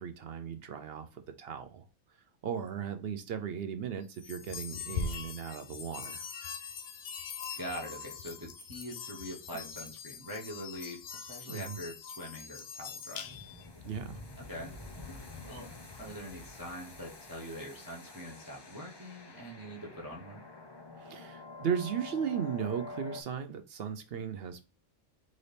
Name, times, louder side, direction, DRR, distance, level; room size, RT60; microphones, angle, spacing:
voice 1, 0.0-1.8 2.4-6.2 11.4-11.8 13.8-14.2 21.0-24.7, right 7 dB, 65° right, 8 dB, 0.6 m, -36 dB
sound 1, 4.1-13.7, left 6 dB, 80° left, 1.1 m, -42 dB
voice 2, 7.6-13.3 14.4-14.7 15.4-15.7 16.0-20.4, equal, 20° right, -2 dB, 0.7 m, -43 dB
sound 2, 13.2-23.2, left 3 dB, 35° left, 0.4 m, -47 dB
4.0 x 3.9 x 3.3 m, 0.32 s
omnidirectional pair, 1.5 m